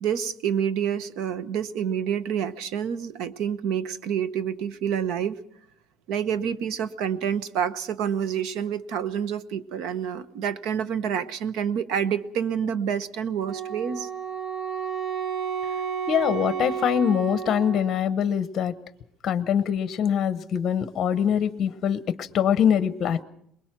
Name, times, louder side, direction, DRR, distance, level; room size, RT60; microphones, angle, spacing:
voice 1, 0.0-5.4 6.1-14.1, right 8 dB, 60° right, 15 dB, 0.9 m, -28 dB
Wind instrument woodwind instrument, 13.5-18.3, right 7 dB, 35° right, 1.2 m, -31 dB
voice 2, 16.1-18.7 19.2-23.2, left 8 dB, 30° left, 13 dB, 0.8 m, -23 dB
23.0 x 21.0 x 6.0 m, 0.70 s
cardioid pair, 175°, 0 cm